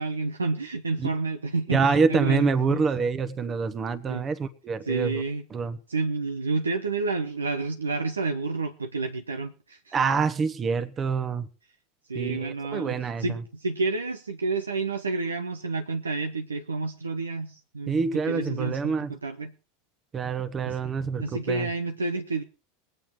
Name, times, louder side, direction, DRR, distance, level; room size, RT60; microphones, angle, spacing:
voice 1, 0.0-2.8 4.1-4.2 4.8-5.4 5.9-10.0 12.1-19.5 20.7-20.8 21.2-22.4, right 3 dB, 85° right, 0.8 m, -30 dB
voice 2, 1.7-5.2 5.5-5.8 9.9-11.5 12.1-13.2 17.9-19.1 20.1-21.7, right 5 dB, 30° right, 1.3 m, -26 dB
21.0 x 8.9 x 4.6 m
figure-of-eight pair, 85°, 0 cm